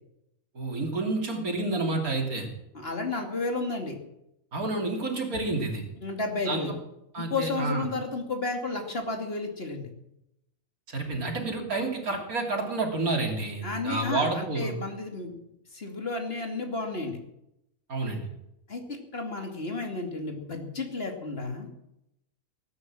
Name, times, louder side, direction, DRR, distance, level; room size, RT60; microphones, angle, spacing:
voice 1, 0.6-2.5 4.5-5.8 6.5-6.8 7.1-7.8 10.9-14.7 17.9-18.2, right 2 dB, 90° right, 1 dB, 3.6 m, -29 dB
voice 2, 2.7-4.0 6.0-6.8 7.2-9.9 13.6-15.3 15.7-17.2 18.7-21.7, left 3 dB, 45° left, 3 dB, 2.8 m, -32 dB
18.0 x 9.7 x 7.6 m, 0.84 s
omnidirectional pair, 1.5 m